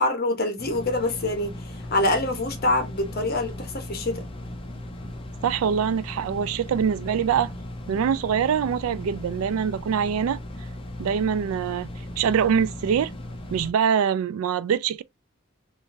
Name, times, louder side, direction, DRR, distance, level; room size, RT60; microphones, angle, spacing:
voice 1, 0.0-1.6 1.9-4.2, left 2 dB, 50° left, 1.0 m, -25 dB
sound 1, 0.6-13.7, left 1 dB, 25° left, 0.6 m, -37 dB
voice 2, 5.4-7.5 7.9-10.4 11.0-11.9 12.2-13.1 13.5-15.0, right 7 dB, 85° right, 0.3 m, -24 dB
3.7 x 2.5 x 2.6 m
head